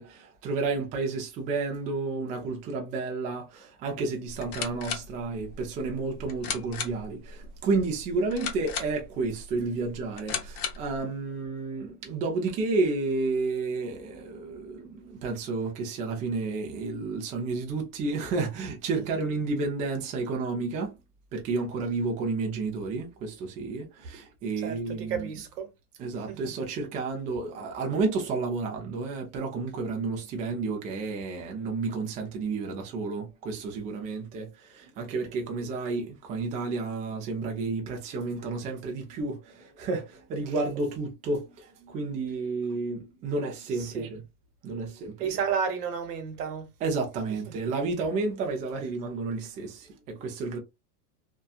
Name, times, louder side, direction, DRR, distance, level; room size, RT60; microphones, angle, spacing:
voice 1, 0.0-20.9 21.3-25.3 26.0-44.2 44.6-45.3 46.8-50.6, right 3 dB, 20° right, 0.4 m, -31 dB
sound 1, 4.3-11.0, left 6 dB, 70° left, 0.9 m, -37 dB
voice 2, 24.6-25.7 26.3-26.5 43.8-44.1 45.2-46.7 47.5-47.6, right 6 dB, 85° right, 1.1 m, -32 dB
2.7 x 2.3 x 2.3 m
supercardioid pair, 140°, 46 cm